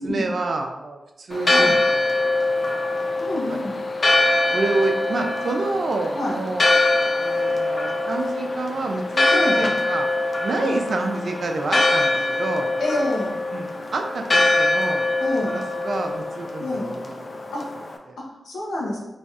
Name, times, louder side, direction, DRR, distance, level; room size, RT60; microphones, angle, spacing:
voice 1, 0.0-2.3 2.6-2.8 3.5-3.7 4.5-6.7 7.2-10.1 10.4-12.7 13.5-15.0 15.5-17.3 18.1-18.2, right 3 dB, 70° right, 3 dB, 0.5 m, -28 dB
Church bell, 1.3-18.0, left 2 dB, 50° left, 0.4 m, -23 dB
voice 2, 3.2-3.8 6.1-6.4 9.3-9.8 10.6-10.8 11.7-11.8 12.8-13.4 15.2-15.6 16.6-16.9 17.5-17.7 18.2-19.0, left 1 dB, 90° left, -3 dB, 0.9 m, -27 dB
3.1 x 2.4 x 4.1 m, 0.98 s
cardioid pair, 65°, 0 cm